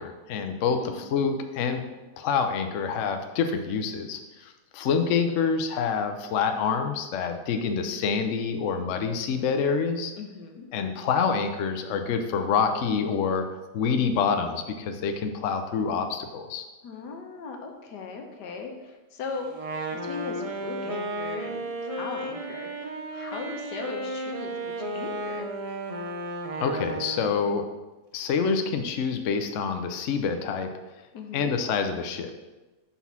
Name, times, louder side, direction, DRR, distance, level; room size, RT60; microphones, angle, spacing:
voice 1, 0.0-1.8 2.2-10.1 10.7-13.5 13.7-16.6 26.6-27.6 28.1-30.7 31.3-32.3, left 6 dB, 60° left, 6 dB, 0.8 m, -27 dB
voice 2, 10.2-10.7 16.8-19.5 19.9-25.6 31.1-31.5, left 4 dB, 85° left, 3 dB, 1.5 m, -39 dB
Wind instrument woodwind instrument, 19.5-27.5, right 1 dB, 65° right, 0.3 m, -34 dB
5.9 x 4.1 x 5.9 m, 1.1 s
omnidirectional pair, 1.8 m